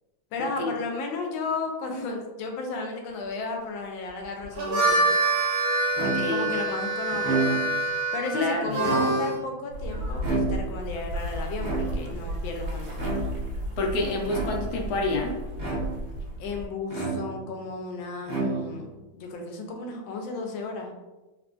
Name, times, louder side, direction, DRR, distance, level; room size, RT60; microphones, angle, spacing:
voice 1, 0.3-5.1 6.0-7.6 8.1-13.2 16.4-20.9, left 3 dB, 85° left, 2 dB, 1.3 m, -34 dB
Harmonica, 4.4-9.4, right 2 dB, 90° right, 1.5 m, -26 dB
voice 2, 6.0-6.5 8.3-8.8 13.8-15.3, left 2 dB, 70° left, 1 dB, 1.0 m, -28 dB
sound 1, 6.0-6.5 7.1-7.9 8.7-9.5 10.2-10.9 11.6-12.2 12.9-13.5 14.3-14.9 15.6-16.2 16.9-17.6 18.2-18.9, right 4 dB, 55° right, 0.4 m, -30 dB
sound 2, 9.7-16.7, equal, 75° right, 1.3 m, -33 dB
3.6 x 2.3 x 2.5 m, 1.1 s
omnidirectional pair, 2.1 m